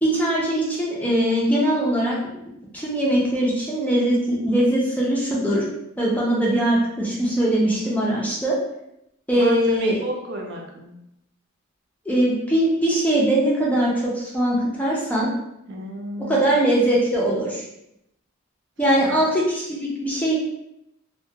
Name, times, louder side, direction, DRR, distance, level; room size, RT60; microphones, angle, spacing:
voice 1, 0.0-2.2 2.7-5.6 6.0-8.5 9.3-10.0 12.1-15.3 16.3-17.6 18.8-20.4, right 1 dB, 5° left, -5 dB, 0.5 m, -21 dB
voice 2, 9.3-10.9 15.7-16.5 19.0-19.3, right 1 dB, 55° right, -1 dB, 0.5 m, -33 dB
2.2 x 2.2 x 2.7 m, 0.82 s
head